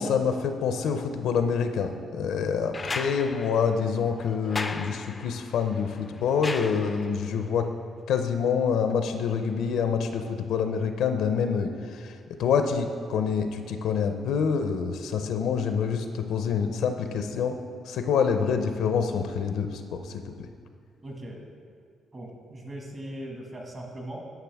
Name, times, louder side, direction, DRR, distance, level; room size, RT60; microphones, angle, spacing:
voice 1, 0.0-7.7 8.1-12.1 12.4-17.6 17.9-20.3, left 6 dB, 80° left, 7 dB, 0.5 m, -26 dB
sound 1, 2.7-7.4 8.9-9.0, left 3 dB, 30° left, 0.4 m, -37 dB
voice 2, 21.0-21.4 22.1-24.2, right 1 dB, 35° right, 0 dB, 1.7 m, -39 dB
12.0 x 5.9 x 3.5 m, 2.2 s
cardioid pair, 90°, 0 cm